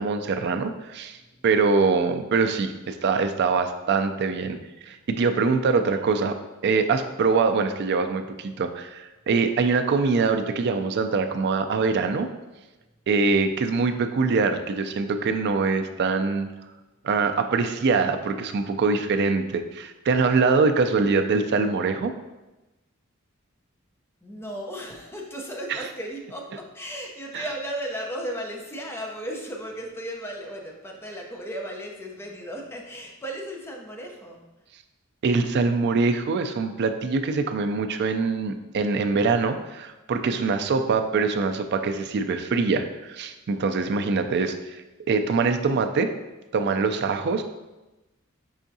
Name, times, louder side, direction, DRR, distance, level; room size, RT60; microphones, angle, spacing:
voice 1, 0.0-1.2 1.4-4.6 4.8-6.4 6.6-12.3 13.1-16.5 17.0-22.1 27.3-27.4 35.2-44.6 45.1-46.1 46.5-47.4, right 4 dB, 55° right, 8 dB, 0.4 m, -23 dB
voice 2, 24.2-34.4, equal, 10° left, 0 dB, 0.6 m, -35 dB
5.6 x 3.5 x 2.7 m, 1.0 s
head